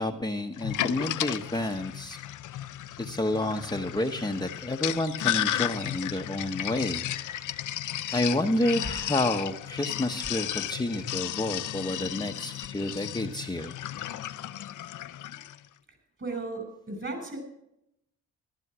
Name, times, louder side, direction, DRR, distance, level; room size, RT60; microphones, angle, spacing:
voice 1, 0.0-2.2 3.0-7.1 8.1-13.7, left 1 dB, 15° left, 4 dB, 1.1 m, -29 dB
Sink (filling or washing), 0.6-15.6, left 12 dB, 75° left, 0.7 m, -34 dB
voice 2, 16.2-17.4, right 3 dB, 40° right, 7 dB, 6.3 m, -35 dB
14.0 x 12.0 x 6.1 m, 0.79 s
cardioid pair, 70°, 31 cm